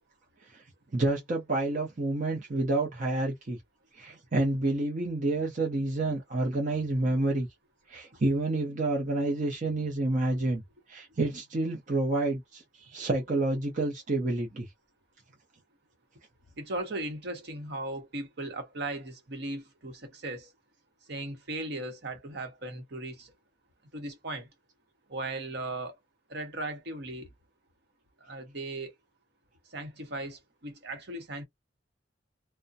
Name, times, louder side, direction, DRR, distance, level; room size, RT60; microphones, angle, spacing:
voice 1, 0.9-3.6 3.9-7.5 7.9-10.6 10.9-14.7, right 2 dB, 45° right, 0.6 m, -29 dB
voice 2, 16.6-20.5 21.1-23.3 23.9-24.5 25.1-26.0 26.3-27.3 28.2-28.9 29.7-31.4, right 2 dB, 60° right, 0.9 m, -37 dB
2.4 x 2.1 x 2.6 m
head